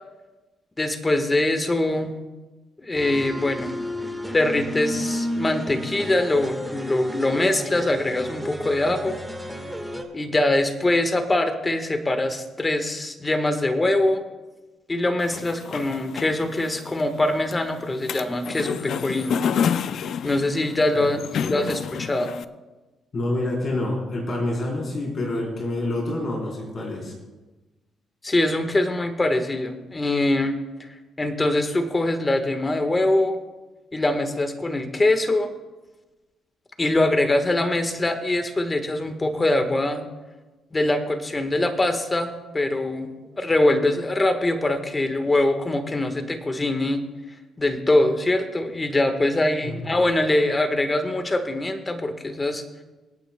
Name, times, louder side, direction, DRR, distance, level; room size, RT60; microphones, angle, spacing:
voice 1, 0.8-2.1 2.8-3.7 4.3-9.2 10.1-14.2 14.9-19.4 20.2-22.3 28.2-30.6 31.2-33.4 33.9-35.5 36.8-40.0 40.7-47.0 47.6-52.6, left 2 dB, 20° left, 7 dB, 1.4 m, -23 dB
sound 1, 2.9-10.0, equal, 5° right, 1.6 m, -32 dB
sound 2, 15.2-22.4, left 8 dB, 65° left, 0.4 m, -30 dB
voice 2, 21.3-21.7 23.1-27.1 49.6-49.8, left 1 dB, 45° left, -2 dB, 4.1 m, -27 dB
25.0 x 9.1 x 2.3 m, 1.2 s
cardioid pair, 90°, 0 cm